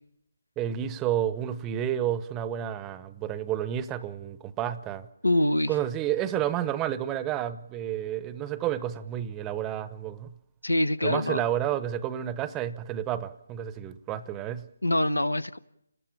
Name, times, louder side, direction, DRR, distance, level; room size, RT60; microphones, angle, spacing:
voice 1, 0.6-5.1 5.7-10.3 11.0-14.7, right 11 dB, 15° right, 0.8 m, -30 dB
voice 2, 5.2-5.7 10.6-11.4 14.8-15.6, left 1 dB, 85° left, 0.9 m, -24 dB
29.5 x 13.5 x 8.8 m
figure-of-eight pair, 150°, 0 cm